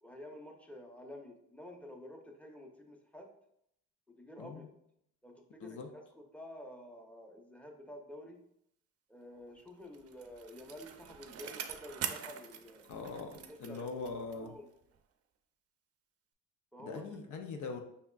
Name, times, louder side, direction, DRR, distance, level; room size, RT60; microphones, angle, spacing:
voice 1, 0.0-3.3 4.1-4.7 5.2-8.4 9.1-12.9 13.3-13.9 14.1-14.7 16.7-17.0, left 1 dB, 5° left, 2 dB, 0.8 m, -50 dB
voice 2, 5.6-5.9 12.9-14.5 16.8-17.8, left 4 dB, 75° left, 5 dB, 0.6 m, -42 dB
Bicycle, 9.7-14.6 14.9-15.0, right 8 dB, 50° right, 0.5 m, -44 dB
5.4 x 3.4 x 2.4 m, 0.75 s
cardioid pair, 90°, 30 cm